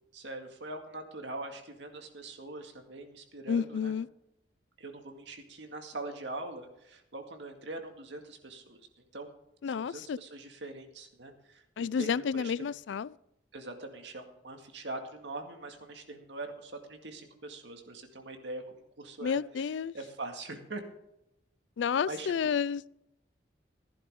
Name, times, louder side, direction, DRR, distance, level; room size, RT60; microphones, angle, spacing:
voice 1, 0.1-3.9 4.8-9.3 9.7-12.7 13.5-19.4 19.9-20.8 22.1-22.3, right 2 dB, 75° right, 2.1 m, -43 dB
voice 2, 3.5-4.1 9.6-10.2 11.8-13.2 19.2-19.9 21.8-23.0, left 6 dB, 80° left, 0.4 m, -31 dB
15.5 x 11.0 x 3.7 m
head